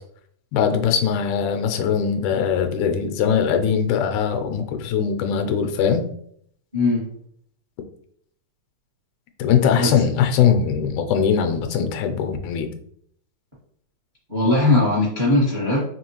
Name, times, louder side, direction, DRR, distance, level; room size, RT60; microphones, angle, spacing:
voice 1, 0.5-6.0 9.4-12.7, left 7 dB, 90° left, 5 dB, 2.0 m, -21 dB
voice 2, 6.7-7.0 9.8-9.9 14.3-15.8, left 2 dB, 55° right, -6 dB, 0.5 m, -19 dB
4.7 x 3.0 x 2.9 m, 0.67 s
omnidirectional pair, 3.3 m